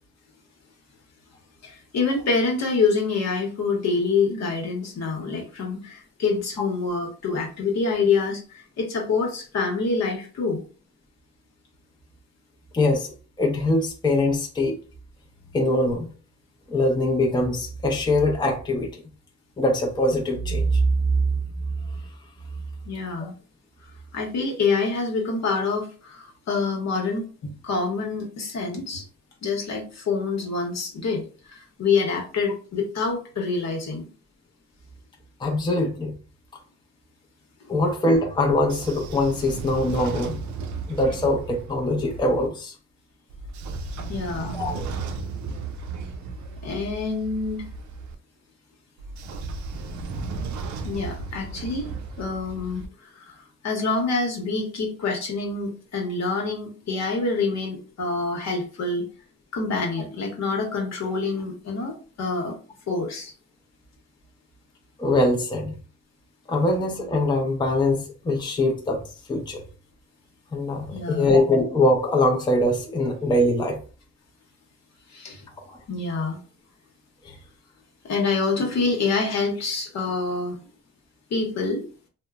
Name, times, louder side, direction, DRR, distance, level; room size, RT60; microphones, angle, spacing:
voice 1, 1.6-10.6 22.9-23.3 24.1-29.0 29.4-34.1 44.1-44.6 46.6-47.6 50.8-51.9 52.2-52.8 53.2-53.4 53.6-59.1 59.5-62.6 62.9-63.3 70.9-71.3 75.1-75.5 75.9-76.4 78.0-80.6 81.3-81.8, left 4 dB, 60° left, 1 dB, 1.0 m, -26 dB
voice 2, 12.7-14.8 15.5-16.1 16.7-18.9 19.6-20.9 35.4-36.1 37.7-40.4 40.9-42.7 44.5-44.8 65.0-65.8 66.5-69.0 69.3-69.6 70.5-73.8 75.7-75.8 77.2-77.3, left 1 dB, 15° left, 1 dB, 0.6 m, -22 dB
Train / Sliding door, 38.4-42.5 43.3-48.1 49.0-52.9, right 4 dB, 70° right, 0.5 m, -35 dB
2.8 x 2.1 x 2.4 m, 0.37 s
cardioid pair, 90°, 30 cm